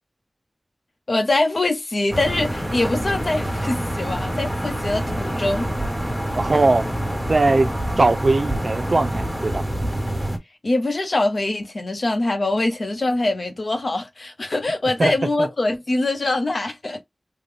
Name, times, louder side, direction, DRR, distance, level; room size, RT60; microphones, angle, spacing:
voice 1, 1.1-5.7 10.6-17.0, left 2 dB, 70° left, 0.9 m, -23 dB
sound 1, 2.1-10.4, right 1 dB, 5° left, 1.3 m, -26 dB
voice 2, 6.4-6.9 7.3-7.7 8.0-9.6 15.0-15.1 15.4-15.5, right 2 dB, 65° right, 0.6 m, -19 dB
3.8 x 2.3 x 3.3 m
wide cardioid pair, 70°, 0 cm